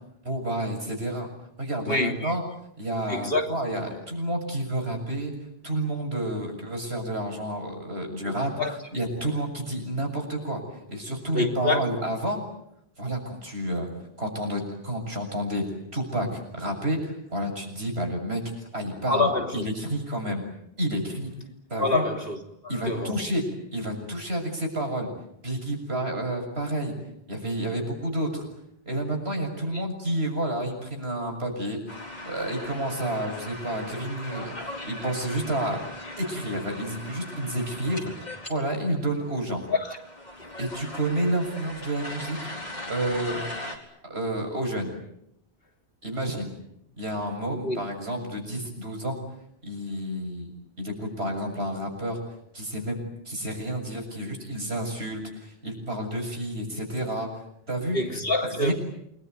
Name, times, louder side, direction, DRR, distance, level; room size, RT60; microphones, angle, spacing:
voice 1, 0.2-1.3 1.6-2.4 2.8-5.3 5.6-8.5 8.9-10.6 10.9-12.4 13.0-13.9 14.2-15.7 15.9-18.4 18.7-20.4 20.8-21.3 21.7-22.0 22.7-23.5 23.7-25.1 25.4-26.9 27.3-28.4 28.9-35.8 36.2-38.1 38.5-39.6 40.6-42.5 42.9-43.5 44.0-44.9 46.0-46.5 47.0-49.2 49.6-50.5 50.8-52.2 52.5-57.3 57.7-58.0 58.4-58.7, right 1 dB, 85° right, 7.5 m, -30 dB
voice 2, 1.9-2.3 3.1-3.4 3.9-4.0 8.2-8.8 9.2-9.3 11.3-11.9 19.1-19.7 21.8-23.2 29.7-29.8 39.7-40.0 40.4-40.5 47.5-47.8 57.9-58.7, left 2 dB, 65° left, 3.5 m, -27 dB
sound 1, 31.9-38.5 38.7-38.8 39.0-43.8, left 1 dB, 45° left, 4.5 m, -39 dB
28.5 x 21.0 x 9.5 m
omnidirectional pair, 1.0 m